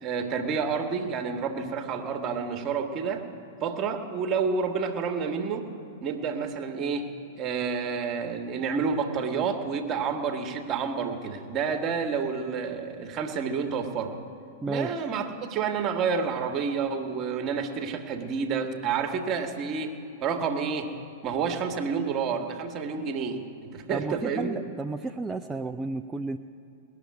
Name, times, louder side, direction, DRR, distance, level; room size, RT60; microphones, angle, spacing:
voice 1, 0.0-3.2 3.6-5.7 6.0-7.1 7.4-14.1 14.7-20.9 21.2-24.6, right 5 dB, 30° right, 5 dB, 1.4 m, -29 dB
voice 2, 14.6-14.9 23.9-26.4, right 3 dB, 10° right, 5 dB, 0.4 m, -32 dB
19.5 x 7.0 x 9.5 m, 2.7 s
figure-of-eight pair, 100°, 0 cm